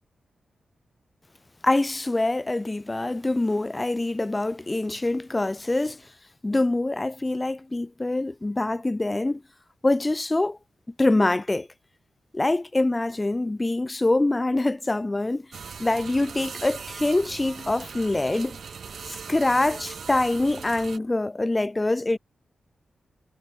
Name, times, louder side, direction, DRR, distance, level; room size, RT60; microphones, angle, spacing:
voice 1, 1.6-6.0 6.4-9.4 9.8-10.6 11.0-11.7 12.3-15.4 15.8-18.6 19.3-22.2, left 2 dB, 25° left, 0.5 m, -24 dB
sound 1, 15.5-21.0, right 6 dB, 70° right, 0.5 m, -39 dB
cardioid pair, 50°, 0 cm